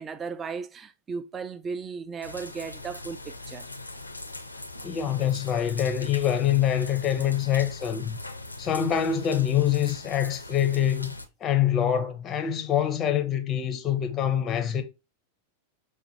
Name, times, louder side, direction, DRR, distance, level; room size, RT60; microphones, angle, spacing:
voice 1, 0.0-3.7, right 5 dB, 20° right, 0.4 m, -36 dB
sound 1, 2.2-11.3, left 2 dB, 85° left, 0.4 m, -41 dB
voice 2, 4.8-8.2 8.6-11.1 11.4-14.8, left 10 dB, 25° left, 0.6 m, -25 dB
5.7 x 2.2 x 2.6 m
figure-of-eight pair, 90°, 0 cm